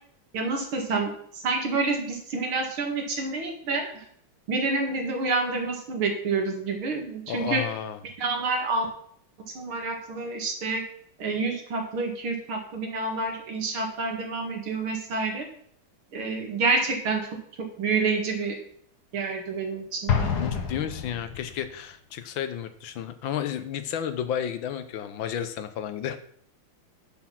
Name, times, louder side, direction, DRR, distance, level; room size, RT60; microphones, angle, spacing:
voice 1, 0.3-4.0 4.5-7.6 8.2-8.9 9.5-10.8 11.2-15.5 16.1-17.3 17.6-18.6 19.1-20.4, right 3 dB, 80° right, 2 dB, 2.9 m, -28 dB
voice 2, 7.3-8.0 20.4-26.2, left 9 dB, 75° left, 10 dB, 1.6 m, -32 dB
Explosion, 20.1-21.7, left 7 dB, 55° left, 1.7 m, -28 dB
10.5 x 6.0 x 5.9 m, 0.63 s
omnidirectional pair, 2.2 m